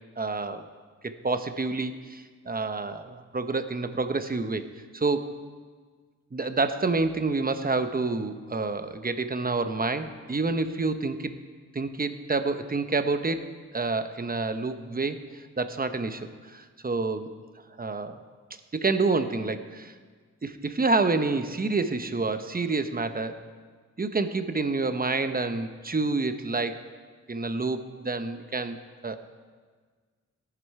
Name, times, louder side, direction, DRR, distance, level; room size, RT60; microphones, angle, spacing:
voice 1, 0.2-0.6 1.0-4.7 4.9-5.3 6.3-11.4 11.7-13.5 13.7-17.3 17.8-18.2 18.7-19.9 20.4-23.4 24.0-26.8 27.3-28.8 29.0-29.2, right 3 dB, 30° right, 9 dB, 0.9 m, -28 dB
16.5 x 11.0 x 4.8 m, 1.5 s
wide cardioid pair, 85°, 29 cm